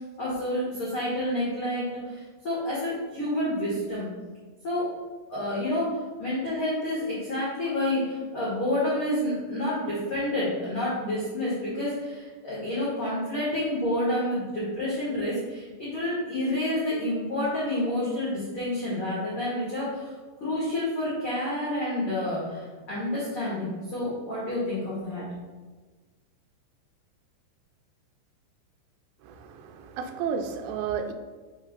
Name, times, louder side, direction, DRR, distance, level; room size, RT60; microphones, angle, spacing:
voice 1, 0.2-4.1 4.6-4.9 5.3-20.1 20.4-25.2, left 1 dB, 90° left, -8 dB, 1.1 m, -29 dB
voice 2, 29.2-31.1, right 6 dB, 85° right, 7 dB, 2.7 m, -32 dB
6.4 x 3.1 x 5.1 m, 1.3 s
omnidirectional pair, 5.0 m